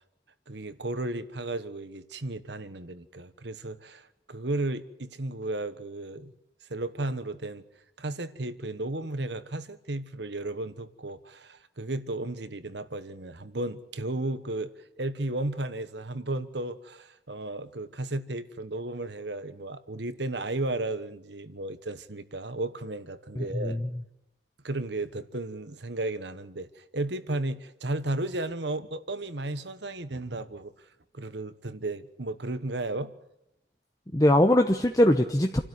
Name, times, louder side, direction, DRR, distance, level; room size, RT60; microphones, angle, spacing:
voice 1, 0.5-6.3 6.7-7.6 8.0-14.7 15.0-23.8 24.6-30.7 31.1-33.1, right 2 dB, 70° right, 1.3 m, -34 dB
voice 2, 23.4-23.8 34.1-35.6, left 1 dB, 20° left, 0.9 m, -22 dB
28.5 x 12.5 x 9.7 m
head